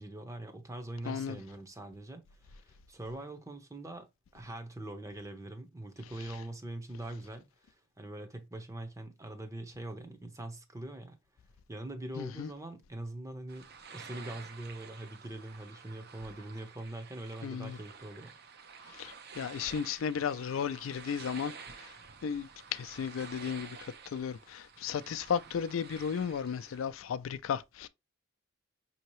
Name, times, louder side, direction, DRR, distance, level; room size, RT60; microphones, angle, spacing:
voice 1, 0.0-4.1 4.3-11.2 11.7-18.3, right 1 dB, 15° right, 0.7 m, -43 dB
voice 2, 1.0-1.4 6.2-6.4 12.2-12.5 17.4-17.8 18.9-21.9 22.2-27.9, left 7 dB, 80° left, 0.4 m, -35 dB
sound 1, 13.5-26.9, right 5 dB, 50° right, 0.6 m, -50 dB
5.4 x 2.8 x 3.0 m
head